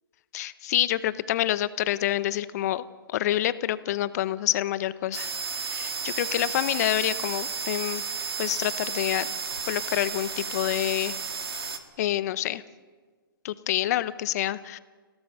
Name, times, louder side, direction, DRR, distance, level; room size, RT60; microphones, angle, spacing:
voice 1, 0.3-5.3 5.6-8.0 8.4-9.3 9.7-11.1 12.0-12.6 13.4-14.8, left 13 dB, 45° left, 16 dB, 0.8 m, -27 dB
sound 1, 5.1-11.8, right 6 dB, 85° right, 2.1 m, -33 dB
28.0 x 17.0 x 5.6 m, 1.5 s
hypercardioid pair, 135°, 12 cm